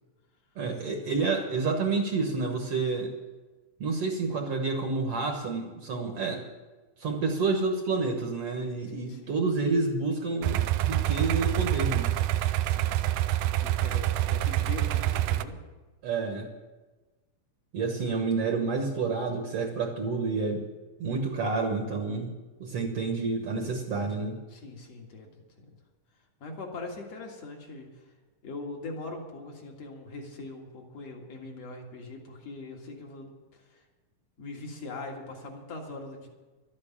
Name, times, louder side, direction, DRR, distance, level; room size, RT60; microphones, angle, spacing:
voice 1, 0.6-3.1 3.8-6.4 7.0-12.1 16.0-16.5 17.7-20.6 21.0-22.3 22.6-24.4, right 4 dB, 60° right, 3 dB, 1.9 m, -29 dB
voice 2, 8.9-9.3 12.7-15.6 18.0-18.1 24.5-25.8 26.4-28.1 28.4-33.8 34.4-36.3, left 3 dB, 55° left, 1 dB, 2.9 m, -42 dB
sound 1, 10.4-15.5, right 14 dB, 85° right, 2.1 m, -26 dB
12.5 x 8.8 x 8.7 m, 1.2 s
omnidirectional pair, 3.7 m